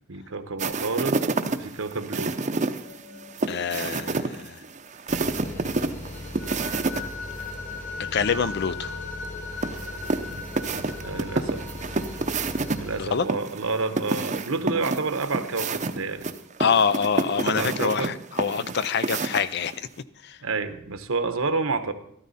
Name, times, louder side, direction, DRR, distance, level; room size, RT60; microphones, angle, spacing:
voice 1, 0.1-2.4 10.3-10.4 11.0-11.6 12.8-16.3 17.4-18.1 18.6-18.7 20.4-21.9, right 3 dB, 75° right, 9 dB, 1.1 m, -29 dB
sound 1, 0.6-7.0 7.3-7.4 9.6-12.8 13.3-19.7, right 3 dB, 35° right, 0.7 m, -28 dB
sound 2, 2.8-5.5 5.8-15.3, left 4 dB, 80° left, 2.6 m, -41 dB
voice 2, 3.5-4.6 8.0-9.0 13.0-13.3 16.6-19.9 20.2-20.4, left 6 dB, 50° left, 15 dB, 0.5 m, -26 dB
sound 3, 5.1-13.1, left 1 dB, 35° left, 1.8 m, -39 dB
13.0 x 13.0 x 4.2 m, 0.70 s
head